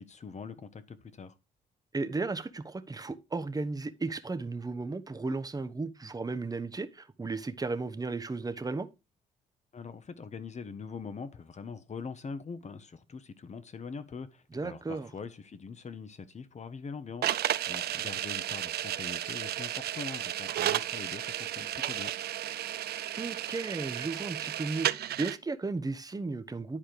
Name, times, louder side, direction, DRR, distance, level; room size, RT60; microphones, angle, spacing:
voice 1, 0.0-1.3 9.7-22.1, left 5 dB, 40° left, 1.2 m, -43 dB
voice 2, 1.9-8.9 14.5-15.1 23.2-26.8, right 3 dB, 20° right, 1.1 m, -35 dB
sound 1, 17.2-25.4, right 12 dB, 65° right, 0.6 m, -33 dB
10.5 x 4.4 x 5.0 m
supercardioid pair, 70°, 18 cm